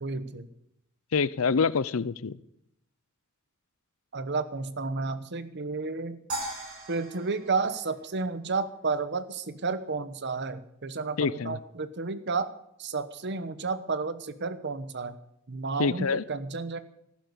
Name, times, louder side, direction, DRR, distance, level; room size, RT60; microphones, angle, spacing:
voice 1, 0.0-0.5 4.1-6.2 6.9-12.5 12.8-15.2 15.5-16.8, right 4 dB, 55° right, 1.0 m, -31 dB
voice 2, 1.1-2.4 11.2-11.6 15.8-16.2, left 5 dB, 75° left, 0.6 m, -26 dB
sound 1, 6.3-8.7, right 1 dB, 90° right, 7.0 m, -39 dB
14.0 x 12.0 x 6.9 m
head